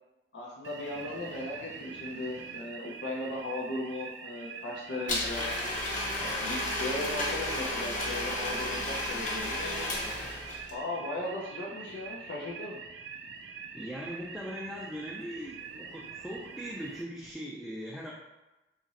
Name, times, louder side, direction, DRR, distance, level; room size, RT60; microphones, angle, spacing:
voice 1, 0.3-5.5 6.2-10.0 10.7-12.8, left 2 dB, 85° left, -4 dB, 0.6 m, -37 dB
sound 1, 0.6-17.0, right 5 dB, 80° right, 0.3 m, -44 dB
Domestic sounds home sounds, 5.1-10.7, left 1 dB, 45° left, 0.7 m, -33 dB
voice 2, 13.7-18.1, equal, ahead, -5 dB, 0.4 m, -40 dB
2.9 x 2.5 x 4.0 m, 1.0 s
head